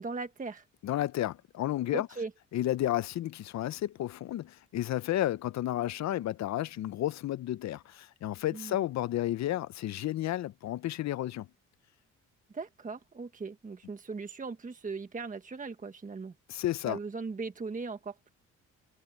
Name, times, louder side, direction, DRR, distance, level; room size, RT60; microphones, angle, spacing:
voice 1, 0.0-0.7 1.9-2.3 8.5-8.8 12.5-16.3 16.9-18.3, right 4 dB, 25° right, 1.4 m, -39 dB
voice 2, 0.8-2.1 2.5-11.5 16.5-17.0, left 13 dB, 65° left, 0.6 m, -32 dB
cardioid pair, 90°, 30 cm